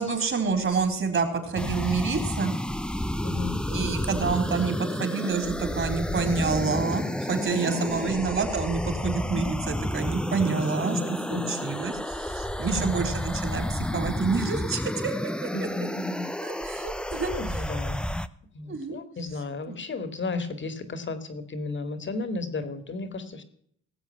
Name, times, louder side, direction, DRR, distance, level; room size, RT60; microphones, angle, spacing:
voice 1, 0.0-2.5 3.7-11.0 11.3-15.1 15.4-15.5 16.4-17.3 18.7-19.0 19.7-19.8, right 5 dB, 45° right, 6 dB, 4.0 m, -28 dB
sound 1, 1.5-18.3, left 1 dB, 5° left, 0.7 m, -31 dB
voice 2, 3.2-3.6 7.5-8.2 10.9-11.6 12.7-13.1 15.5-16.3 17.1-18.0 18.5-23.4, left 3 dB, 40° left, 11 dB, 2.2 m, -34 dB
18.5 x 7.8 x 5.7 m, 0.67 s
cardioid pair, 90°, 30 cm